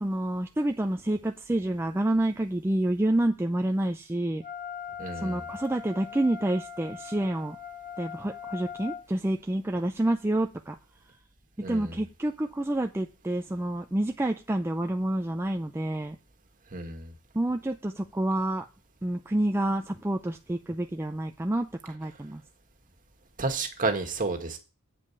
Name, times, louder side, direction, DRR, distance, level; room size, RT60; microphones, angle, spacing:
voice 1, 0.0-4.4 5.1-7.6 8.0-10.8 11.6-16.2 17.3-18.7 19.0-22.4, right 1 dB, 10° right, 5 dB, 0.4 m, -28 dB
Wind instrument woodwind instrument, 4.4-9.0, left 7 dB, 35° left, 1.2 m, -41 dB
voice 2, 5.0-5.4 11.6-11.9 16.7-17.1 23.4-24.6, right 3 dB, 40° right, 5 dB, 1.7 m, -31 dB
8.6 x 5.3 x 7.0 m, 0.32 s
head